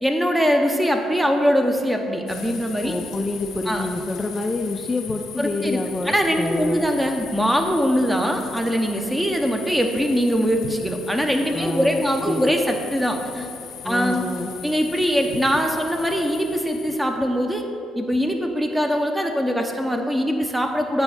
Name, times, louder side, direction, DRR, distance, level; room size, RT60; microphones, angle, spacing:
voice 1, 0.0-2.9 3.7-3.9 5.4-13.5 13.8-14.3 14.6-17.6 18.0-21.0, equal, 5° right, 4 dB, 0.8 m, -22 dB
sound 1, 2.3-17.0, left 7 dB, 70° left, 0.7 m, -39 dB
voice 2, 2.8-6.8 11.5-12.5 13.8-14.5, left 2 dB, 20° left, 3 dB, 0.4 m, -27 dB
8.9 x 3.4 x 5.6 m, 2.6 s
cardioid pair, 95°, 0 cm